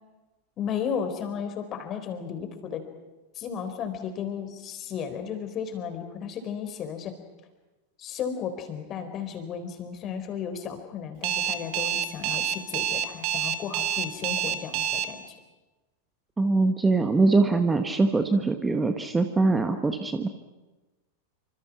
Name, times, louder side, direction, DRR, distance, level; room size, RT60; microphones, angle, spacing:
voice 1, 0.6-2.8 3.4-7.1 8.0-15.3, left 7 dB, 30° left, 8 dB, 3.9 m, -34 dB
Alarm, 11.2-15.0, right 9 dB, 45° right, 1.9 m, -27 dB
voice 2, 16.4-20.3, right 3 dB, 10° right, 7 dB, 1.4 m, -23 dB
27.0 x 26.0 x 6.0 m, 1.1 s
figure-of-eight pair, 90°, 0 cm